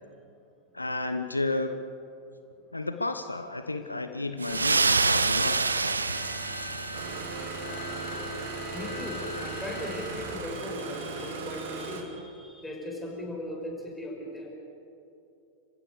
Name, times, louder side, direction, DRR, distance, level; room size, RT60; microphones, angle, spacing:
voice 1, 0.7-1.7 2.7-6.2, left 2 dB, 85° left, 8 dB, 1.0 m, -32 dB
sound 1, 4.4-7.4, right 4 dB, 80° right, 0.7 m, -26 dB
sound 2, 4.5-10.7, left 2 dB, 55° left, 4.0 m, -41 dB
Engine starting, 6.9-12.0, right 4 dB, 55° right, 2.8 m, -37 dB
voice 2, 8.7-14.5, left 1 dB, 5° left, -1 dB, 6.0 m, -38 dB
29.5 x 16.0 x 7.0 m, 2.7 s
figure-of-eight pair, 90°, 0 cm